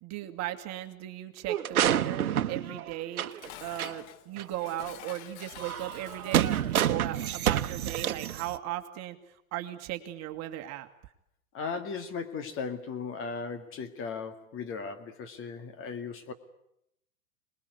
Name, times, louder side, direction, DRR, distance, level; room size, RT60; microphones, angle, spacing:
voice 1, 0.0-3.3 3.6-9.2 9.5-10.9, right 13 dB, 35° right, 7 dB, 2.1 m, -37 dB
sound 1, 1.5-3.5 3.8-3.9 4.4-4.5 5.6-8.6, right 10 dB, 85° right, 1.1 m, -28 dB
Dishes pots and pans, 3.0-6.8, left 11 dB, 50° left, 1.5 m, -49 dB
voice 2, 11.5-16.3, left 5 dB, 30° left, 8 dB, 2.1 m, -37 dB
25.0 x 21.0 x 9.5 m, 0.79 s
hypercardioid pair, 120°, 43 cm